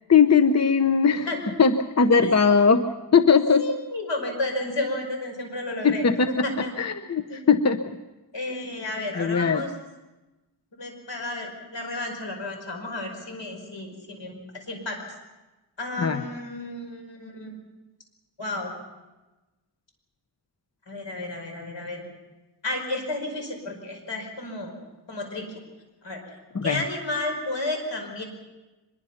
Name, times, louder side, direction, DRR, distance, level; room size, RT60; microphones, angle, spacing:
voice 1, 0.1-1.3 1.6-3.6 5.8-7.8 9.2-9.6 16.0-16.2 26.5-26.8, left 5 dB, 35° left, 9 dB, 0.8 m, -20 dB
voice 2, 3.6-6.0 6.4-6.7 7.3-7.4 8.3-9.7 10.8-15.1 15.8-17.5 18.4-18.7 20.9-22.0 22.6-24.7 25.1-25.6 26.0-26.2 26.6-28.2, left 2 dB, 75° left, 3 dB, 5.3 m, -32 dB
24.0 x 21.5 x 5.8 m, 1.1 s
wide cardioid pair, 105°, 43 cm